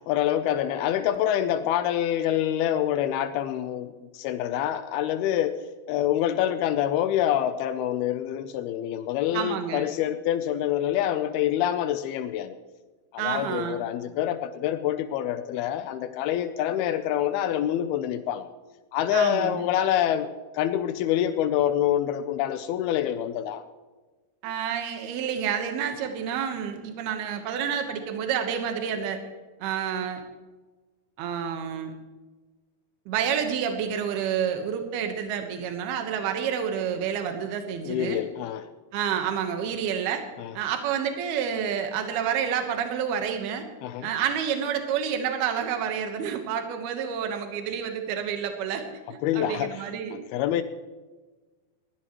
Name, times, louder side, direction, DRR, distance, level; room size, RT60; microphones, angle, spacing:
voice 1, 0.1-5.6 5.9-12.6 13.1-18.5 18.9-20.3 20.5-23.6 37.8-38.7 40.4-40.5 43.8-44.1 49.2-49.8 50.1-50.6, left 11 dB, 85° left, 10 dB, 2.6 m, -26 dB
voice 2, 9.3-9.9 13.2-13.8 19.1-19.6 24.4-29.2 29.6-30.2 31.2-31.9 33.1-38.2 38.9-40.2 40.5-43.7 44.0-48.8 49.1-50.2, right 8 dB, 80° right, 6 dB, 3.2 m, -29 dB
19.5 x 15.0 x 3.1 m, 1.3 s
omnidirectional pair, 4.5 m